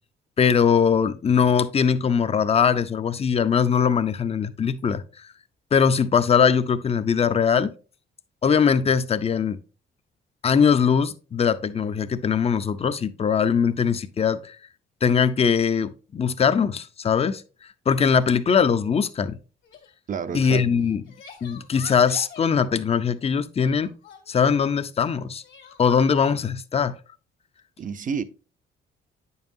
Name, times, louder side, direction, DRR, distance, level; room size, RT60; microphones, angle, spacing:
voice 1, 0.4-5.0 5.7-7.7 8.4-9.6 10.4-14.6 15.0-17.4 17.9-19.4 20.3-21.0 21.4-23.9 24.3-25.4 25.8-26.9, left 6 dB, 30° left, 0.5 m, -21 dB
Crying sobbing, 19.6-19.9 20.8-22.5 23.6-24.6 25.4-26.3, left 7 dB, 80° left, 1.6 m, -45 dB
voice 2, 20.1-20.8 27.8-28.2, right 6 dB, 40° right, 0.6 m, -30 dB
8.7 x 5.5 x 2.6 m
cardioid pair, 90°, 20 cm